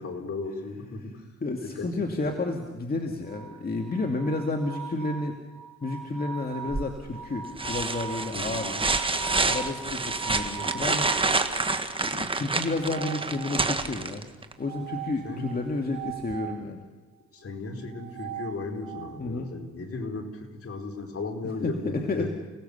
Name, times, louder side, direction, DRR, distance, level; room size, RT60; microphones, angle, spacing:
voice 1, 0.0-1.2 1.6-2.4 8.3-8.9 15.2-15.6 17.3-22.3, left 3 dB, 50° left, 3 dB, 4.4 m, -36 dB
voice 2, 1.4-5.4 5.8-8.7 9.4-11.1 12.0-14.2 14.6-16.8 19.2-19.5 21.6-22.3, left 2 dB, 30° left, 3 dB, 2.3 m, -31 dB
sound 1, 3.3-11.4 12.6-13.9 14.6-16.6 17.8-19.2, right 7 dB, 65° right, 2.6 m, -40 dB
sound 2, 6.7-7.1 7.6-14.5 16.3-16.4, right 3 dB, 15° right, 1.6 m, -28 dB
29.5 x 18.5 x 7.0 m, 1.2 s
cardioid pair, 90°, 30 cm